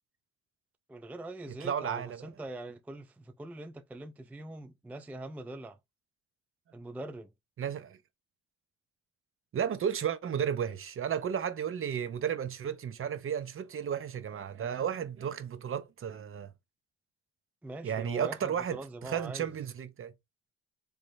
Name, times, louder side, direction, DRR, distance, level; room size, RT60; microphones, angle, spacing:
voice 1, 0.9-5.8 6.7-7.3 17.6-19.5, right 2 dB, 5° right, 0.4 m, -43 dB
voice 2, 1.6-2.3 7.6-8.0 9.5-16.5 17.8-20.1, right 8 dB, 45° right, 0.7 m, -33 dB
3.4 x 3.1 x 2.6 m
cardioid pair, 90°, 30 cm